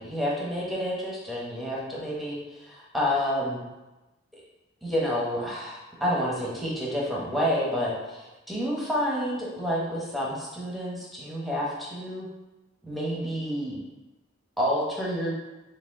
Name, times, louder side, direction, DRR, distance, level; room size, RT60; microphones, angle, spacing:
voice 1, 0.0-3.6 4.8-12.3 12.8-13.8 14.6-15.3, equal, ahead, -5 dB, 0.9 m, -29 dB
4.9 x 2.5 x 3.6 m, 1.1 s
head